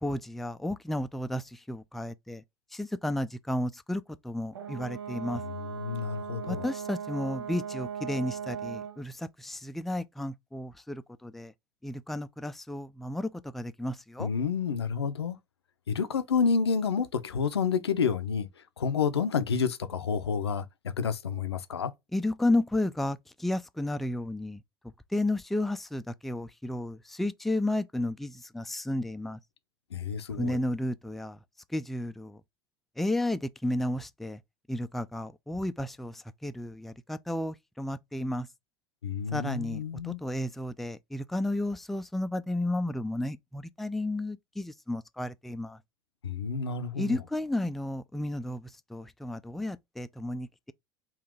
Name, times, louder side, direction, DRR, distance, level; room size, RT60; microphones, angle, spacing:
voice 1, 0.0-2.4 2.7-5.4 6.5-11.5 11.8-14.3 22.1-24.6 25.1-29.4 30.3-31.4 31.7-32.4 33.0-34.4 34.7-38.5 39.3-45.8 46.9-50.7, left 1 dB, ahead, 0.3 m, -32 dB
Brass instrument, 4.5-9.0, right 7 dB, 85° right, 0.5 m, -38 dB
voice 2, 5.6-6.7 14.2-15.4 15.9-18.5 18.8-20.6 21.0-21.9 29.9-30.6 39.0-40.2 46.2-47.2, left 6 dB, 90° left, 0.5 m, -29 dB
3.7 x 2.4 x 3.5 m
hypercardioid pair, 75°, 13 cm